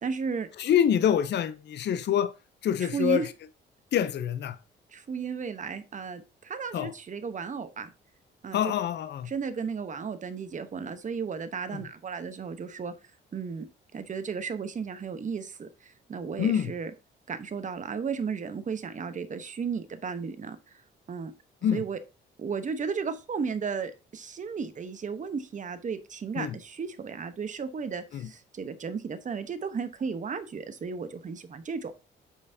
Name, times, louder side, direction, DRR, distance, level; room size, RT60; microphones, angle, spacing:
voice 1, 0.0-0.5 2.8-3.3 4.9-7.9 8.4-8.7 9.3-12.9 13.3-13.7 13.9-16.9 17.3-20.6 21.1-21.3 21.7-22.0 22.4-31.9, right 5 dB, 40° right, 1.0 m, -34 dB
voice 2, 0.6-2.3 2.6-3.3 3.9-4.6 6.7-6.9 8.5-9.3 11.7-11.8 16.4-16.7 21.6-21.8 26.4-26.6 28.1-28.3, left 9 dB, 60° left, 0.7 m, -26 dB
8.2 x 5.5 x 2.7 m
cardioid pair, 90°, 20 cm